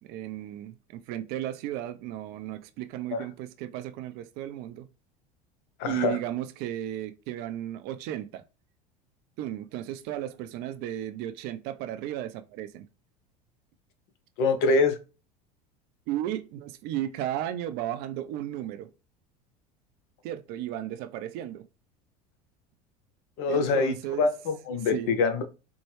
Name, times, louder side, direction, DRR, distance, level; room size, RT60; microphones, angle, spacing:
voice 1, 0.0-4.9 5.8-8.4 9.4-12.9 16.1-18.9 20.2-21.7 23.5-24.3 24.9-25.1, right 12 dB, 50° right, 0.5 m, -34 dB
voice 2, 5.8-6.2 14.4-15.0 23.4-25.4, left 4 dB, 55° left, 0.7 m, -25 dB
4.4 x 2.2 x 3.1 m
hypercardioid pair, 80°, 21 cm